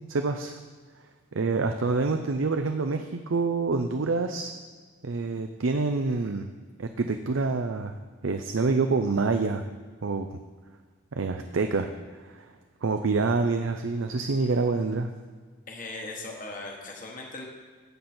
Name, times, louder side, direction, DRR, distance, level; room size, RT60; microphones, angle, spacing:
voice 1, 0.1-0.6 1.3-4.5 5.0-6.5 6.8-7.9 8.2-9.6 10.0-10.3 11.1-11.9 12.2-12.5 12.8-15.1, right 3 dB, 70° right, 6 dB, 0.6 m, -26 dB
voice 2, 15.7-17.5, left 2 dB, 40° left, 0 dB, 1.4 m, -38 dB
12.0 x 7.9 x 4.4 m, 1.5 s
head